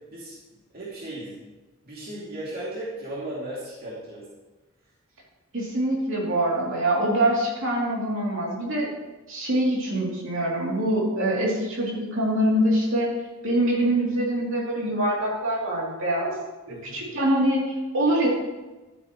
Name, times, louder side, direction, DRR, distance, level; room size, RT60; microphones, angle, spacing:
voice 1, 0.7-1.4 1.8-4.3 16.7-17.1, right 1 dB, 50° right, -7 dB, 2.5 m, -36 dB
voice 2, 5.5-8.9 9.3-13.1 13.4-16.3 16.7-17.6 17.9-18.3, right 1 dB, 65° right, -3 dB, 2.8 m, -24 dB
12.0 x 8.6 x 3.0 m, 1.1 s
head